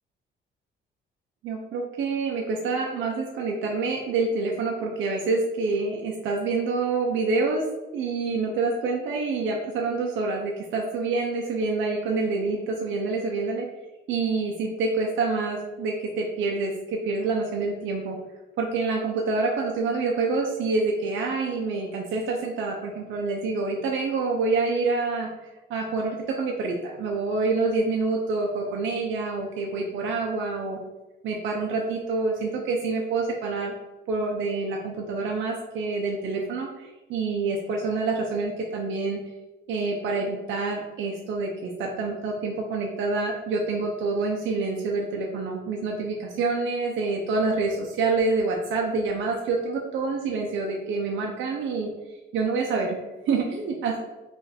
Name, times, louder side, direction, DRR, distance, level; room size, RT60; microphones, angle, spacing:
voice 1, 1.4-7.7 7.9-13.7 14.1-18.2 18.6-30.8 31.2-33.7 34.1-39.2 39.7-51.9 52.3-54.0, right 3 dB, 70° right, 0 dB, 0.5 m, -27 dB
2.6 x 2.5 x 3.9 m, 1.1 s
cardioid pair, 90°, 20 cm